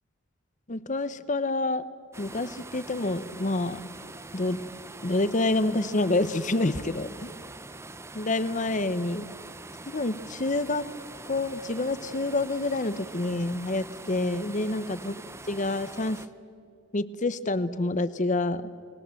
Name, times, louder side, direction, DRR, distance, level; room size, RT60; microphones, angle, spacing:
voice 1, 0.7-1.8 2.2-3.8 4.3-4.6 5.0-7.3 8.1-9.2 9.9-10.8 11.3-15.1 15.5-16.2 16.9-18.6, left 2 dB, 40° left, 15 dB, 0.9 m, -27 dB
sound 1, 2.1-16.3, right 2 dB, 15° right, 0.7 m, -44 dB
29.5 x 20.5 x 7.8 m, 2.5 s
head